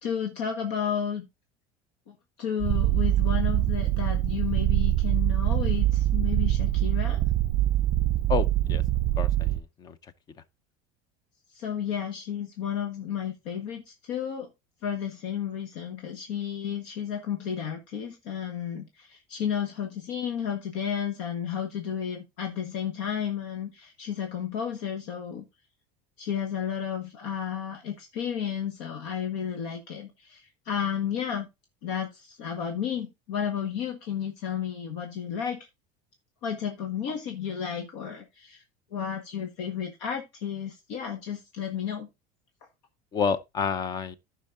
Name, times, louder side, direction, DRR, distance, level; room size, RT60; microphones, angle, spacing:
voice 1, 0.0-1.3 2.1-7.2 11.5-14.5 14.8-25.4 26.2-31.5 31.8-35.7 36.4-38.6 38.9-42.1, left 8 dB, 70° left, 1.5 m, -32 dB
Purr, 2.6-9.6, right 14 dB, 30° right, 0.4 m, -24 dB
voice 2, 8.3-8.8 9.2-10.0 43.1-44.2, left 6 dB, 20° left, 0.6 m, -29 dB
14.5 x 5.6 x 2.7 m
cardioid pair, 165°, 17 cm